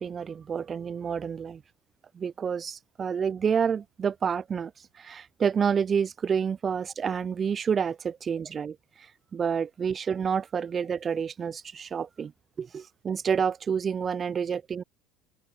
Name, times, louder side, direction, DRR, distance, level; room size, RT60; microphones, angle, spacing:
voice 1, 0.0-1.6 2.1-4.7 5.0-8.8 9.3-12.3 12.6-14.8, right 7 dB, 35° right, 0.4 m, -29 dB
hypercardioid pair, 70°, 0 cm